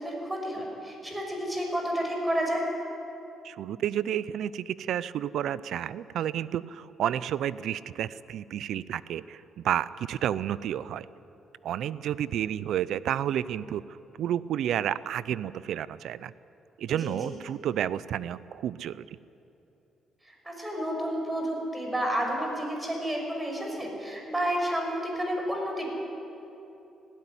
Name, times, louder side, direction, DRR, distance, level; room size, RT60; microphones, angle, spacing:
voice 1, 0.0-2.6 16.9-17.3 20.4-25.9, equal, 15° right, 1 dB, 5.9 m, -30 dB
voice 2, 3.4-11.1 11.6-16.3 16.8-19.1, right 10 dB, 75° right, 17 dB, 0.6 m, -31 dB
18.0 x 16.5 x 9.9 m, 2.9 s
cardioid pair, 90°, 0 cm